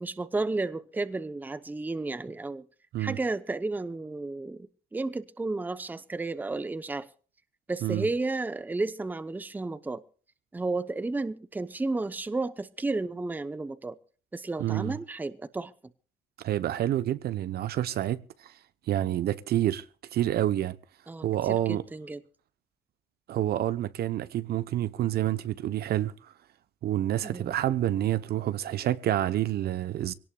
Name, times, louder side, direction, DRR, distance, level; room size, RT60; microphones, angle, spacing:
voice 1, 0.0-2.7 3.0-7.1 7.7-10.0 10.5-14.0 14.3-15.7 21.1-22.2 27.2-27.5, right 3 dB, 10° right, 0.7 m, -32 dB
voice 2, 14.6-15.0 16.4-18.5 18.9-19.8 20.1-20.8 21.2-21.8 23.3-26.3 26.8-30.1, right 12 dB, 55° right, 0.8 m, -28 dB
25.0 x 18.0 x 2.3 m
cardioid pair, 150°, 20 cm